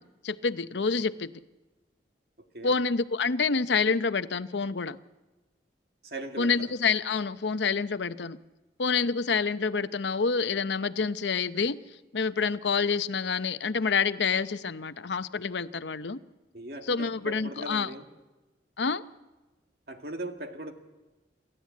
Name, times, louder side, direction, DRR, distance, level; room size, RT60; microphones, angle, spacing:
voice 1, 0.2-1.3 2.6-5.0 6.4-8.4 8.8-11.8 12.1-16.2 16.9-17.9 18.8-19.0, left 5 dB, 85° left, 13 dB, 0.7 m, -27 dB
voice 2, 6.0-6.7 16.5-18.0 19.9-20.7, right 1 dB, 60° right, 5 dB, 2.0 m, -39 dB
27.5 x 13.5 x 8.4 m, 1.1 s
head